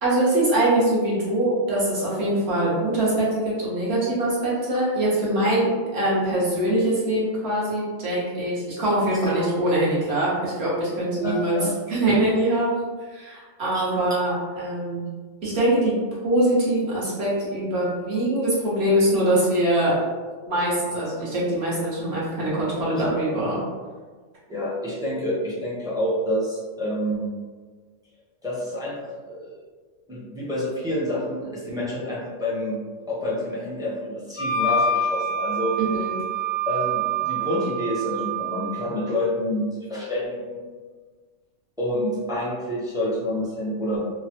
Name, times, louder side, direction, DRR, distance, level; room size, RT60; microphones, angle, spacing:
voice 1, 0.0-11.6 11.9-12.8 13.1-15.0 15.4-15.9 16.2-19.9 20.5-23.6 35.8-36.1, right 1 dB, 55° right, -7 dB, 1.3 m, -23 dB
voice 2, 11.2-11.7 13.7-13.9 24.5-27.3 28.4-29.5 30.1-32.8 33.1-35.8 36.7-40.7 41.8-44.0, left 1 dB, 5° right, -7 dB, 0.4 m, -28 dB
Wind instrument woodwind instrument, 34.4-38.9, right 3 dB, 50° left, 0.6 m, -26 dB
3.1 x 2.1 x 2.8 m, 1.5 s
omnidirectional pair, 1.3 m